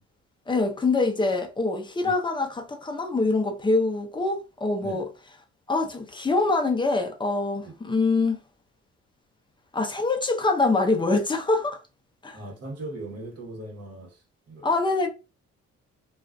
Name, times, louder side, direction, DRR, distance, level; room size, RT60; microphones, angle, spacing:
voice 1, 0.5-5.1 5.7-8.4 9.7-11.8 12.2-12.4 14.6-15.1, left 3 dB, 15° left, 0.6 m, -24 dB
voice 2, 12.3-14.7, right 2 dB, 55° right, 1.1 m, -39 dB
2.5 x 2.4 x 2.2 m
cardioid pair, 90°, 30 cm